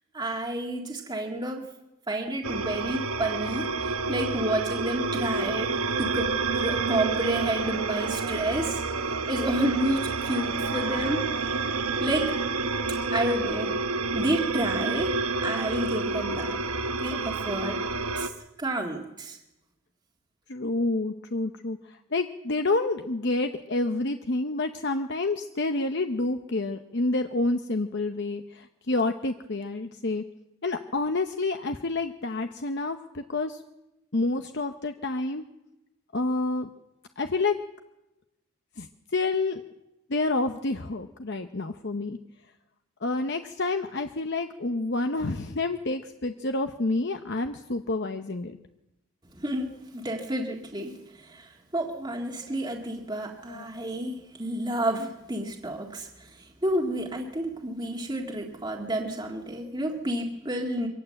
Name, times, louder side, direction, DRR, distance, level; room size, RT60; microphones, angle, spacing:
voice 1, 0.1-1.7 2.1-8.8 9.3-11.3 12.0-12.4 12.9-13.8 14.1-16.6 17.0-17.8 18.1-18.3 18.6-19.4 49.4-60.9, right 1 dB, 20° right, 0 dB, 1.8 m, -30 dB
sound 1, 2.4-18.3, right 4 dB, 80° right, 1.2 m, -29 dB
voice 2, 20.5-30.2 30.6-33.6 34.1-35.4 36.1-36.7 37.2-37.5 38.8-39.6 40.1-42.2 43.0-48.6 52.5-52.6 53.5-53.7, left 2 dB, 50° left, 7 dB, 0.9 m, -28 dB
24.0 x 18.0 x 7.7 m, 0.94 s
head